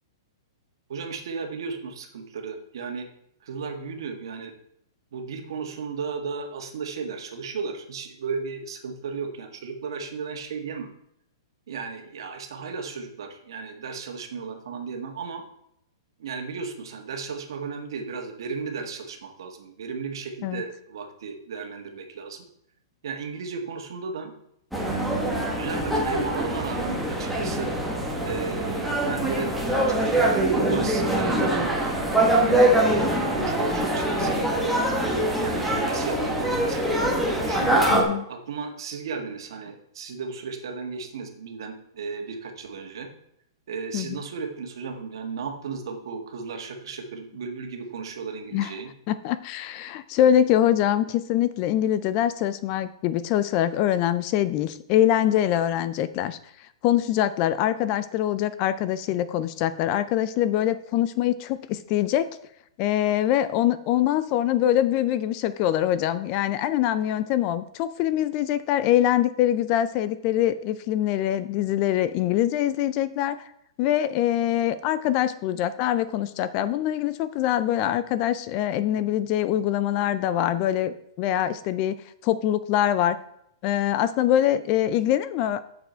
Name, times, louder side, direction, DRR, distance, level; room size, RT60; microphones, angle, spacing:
voice 1, 0.9-3.1 3.4-4.5 5.1-10.9 11.7-15.5 16.2-22.4 23.0-24.3 25.5-27.7 28.2-34.8 35.4-37.8 38.3-43.1 43.7-48.9, right 5 dB, 60° right, 4 dB, 1.7 m, -35 dB
sound 1, 24.7-38.0, right 1 dB, ahead, 1.1 m, -24 dB
voice 2, 37.9-38.2 43.9-44.2 48.5-48.7 49.1-62.4 62.8-73.5 73.8-81.9 82.2-83.2 83.6-85.6, left 11 dB, 25° left, 14 dB, 0.3 m, -24 dB
7.9 x 6.8 x 4.4 m, 0.75 s
hypercardioid pair, 170°, 3 cm